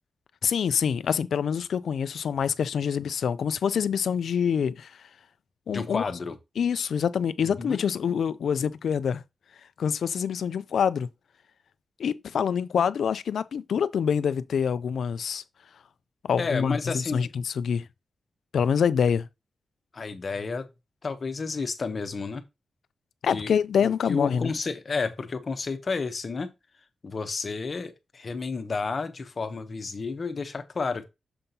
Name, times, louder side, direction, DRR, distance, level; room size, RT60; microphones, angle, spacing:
voice 1, 0.4-4.9 5.7-6.1 6.6-9.2 9.8-11.1 12.0-15.4 16.2-17.9 18.5-19.3 23.2-24.5, left 7 dB, 75° left, 0.4 m, -26 dB
voice 2, 5.7-6.4 7.4-7.8 16.4-17.3 19.9-20.7 21.0-22.4 23.3-26.5 27.0-31.1, left 4 dB, 40° left, 0.8 m, -31 dB
6.9 x 5.3 x 2.8 m
wide cardioid pair, 150°, 0 cm